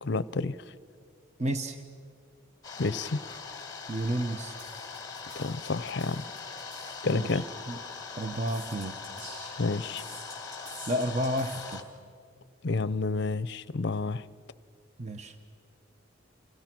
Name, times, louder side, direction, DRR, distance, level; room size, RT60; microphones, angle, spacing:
voice 1, 0.0-0.6 2.8-3.2 5.4-6.2 7.0-7.4 9.6-10.0 12.6-14.2, left 3 dB, 55° left, 18 dB, 0.6 m, -29 dB
voice 2, 1.4-1.8 3.9-4.6 7.0-7.8 8.2-9.0 10.9-11.8 15.0-15.4, right 1 dB, 35° right, 7 dB, 0.9 m, -31 dB
sound 1, 2.6-11.8, left 4 dB, 20° left, 1.6 m, -41 dB
sound 2, 4.6-7.3 8.2-9.6 10.0-11.8, right 1 dB, 55° right, 8.0 m, -48 dB
30.0 x 26.5 x 6.1 m, 2.2 s
head